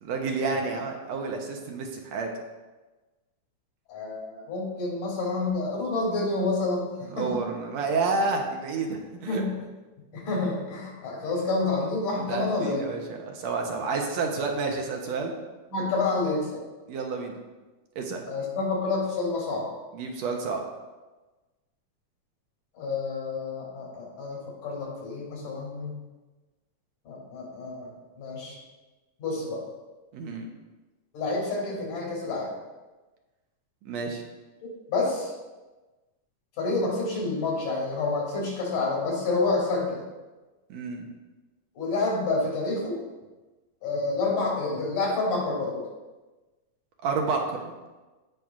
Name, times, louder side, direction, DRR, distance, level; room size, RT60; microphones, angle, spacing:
voice 1, 0.0-2.3 7.1-9.4 12.3-15.3 16.9-17.4 18.0-18.2 19.9-20.6 30.1-30.5 33.8-34.2 40.7-41.0 47.0-47.7, right 4 dB, 70° right, 2 dB, 1.9 m, -30 dB
voice 2, 3.9-7.4 9.3-9.6 10.1-12.8 15.7-16.6 18.3-19.7 22.8-25.9 27.0-27.9 28.2-28.6 29.2-29.6 31.1-32.5 34.6-35.3 36.6-40.0 41.7-43.0 43.8-45.8, left 3 dB, 85° left, -4 dB, 4.6 m, -28 dB
17.0 x 5.8 x 2.5 m, 1.2 s
omnidirectional pair, 3.5 m